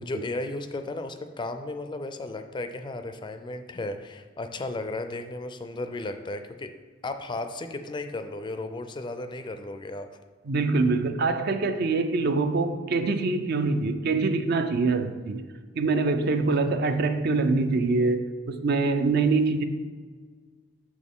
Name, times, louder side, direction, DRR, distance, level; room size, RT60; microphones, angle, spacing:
voice 1, 0.0-6.7 7.0-10.1, left 2 dB, 25° left, 8 dB, 0.4 m, -34 dB
voice 2, 10.5-15.5 15.8-19.6, right 3 dB, 55° right, 9 dB, 0.4 m, -24 dB
6.2 x 6.2 x 3.6 m, 1.5 s
head